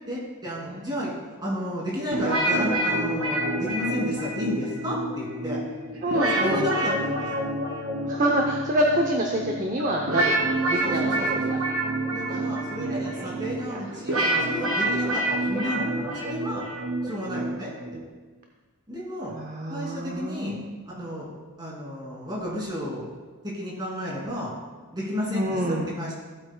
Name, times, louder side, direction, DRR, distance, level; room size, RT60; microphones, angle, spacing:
voice 1, 0.1-1.1 1.4-5.6 6.3-7.4 10.8-11.6 12.1-16.7 17.0-17.7 18.9-19.3 19.7-20.6 20.9-21.3 21.6-23.1 23.4-24.5 24.9-26.1, equal, 20° right, -4 dB, 2.7 m, -32 dB
sound 1, 2.1-18.0, right 1 dB, 85° right, 2.3 m, -27 dB
voice 2, 6.0-6.7 8.0-11.6 12.7-13.4 19.3-20.7 25.3-25.9, right 1 dB, 35° right, 1 dB, 0.7 m, -27 dB
15.0 x 8.3 x 2.3 m, 1.4 s
head